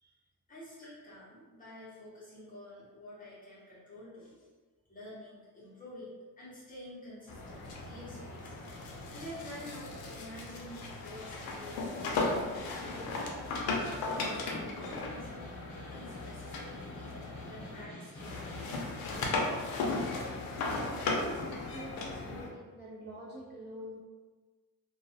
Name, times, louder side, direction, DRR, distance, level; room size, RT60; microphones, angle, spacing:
voice 1, 0.5-4.5 4.9-8.6 9.1-13.4 14.0-15.5 15.9-19.0, left 1 dB, 25° left, -9 dB, 0.7 m, -49 dB
sound 1, 7.3-17.8 18.2-22.5, left 3 dB, 75° left, 0.5 m, -36 dB
Snare drum, 14.3-18.8, equal, 5° left, 1.3 m, -50 dB
voice 2, 20.8-24.0, equal, 30° right, -8 dB, 0.8 m, -46 dB
2.3 x 2.2 x 2.7 m, 1.3 s
cardioid pair, 145°, 36 cm